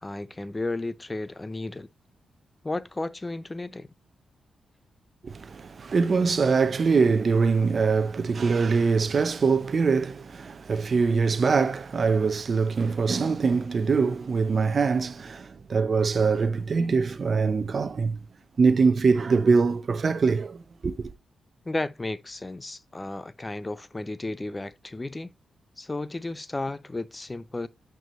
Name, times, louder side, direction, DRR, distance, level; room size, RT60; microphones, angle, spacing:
voice 1, 0.0-1.9 2.6-3.9 21.6-25.3 25.8-27.7, left 2 dB, 25° left, 0.7 m, -33 dB
voice 2, 5.2-18.2 18.6-21.1, right 5 dB, 55° right, 0.8 m, -23 dB
9.0 x 4.7 x 3.1 m
supercardioid pair, 55°, 0 cm